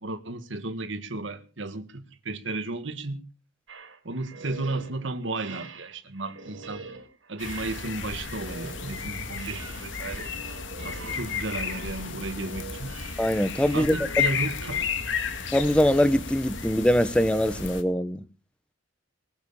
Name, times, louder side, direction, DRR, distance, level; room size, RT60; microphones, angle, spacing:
voice 1, 0.0-3.2 4.1-6.8 7.3-10.3 10.8-12.9 13.7-14.8, right 2 dB, 70° right, 1.8 m, -34 dB
sound 1, 3.7-14.8, right 4 dB, 85° right, 4.2 m, -45 dB
sound 2, 7.4-17.8, left 6 dB, 70° left, 2.1 m, -33 dB
voice 2, 13.2-13.9 15.5-18.2, equal, 5° left, 1.0 m, -22 dB
20.0 x 8.2 x 7.0 m
head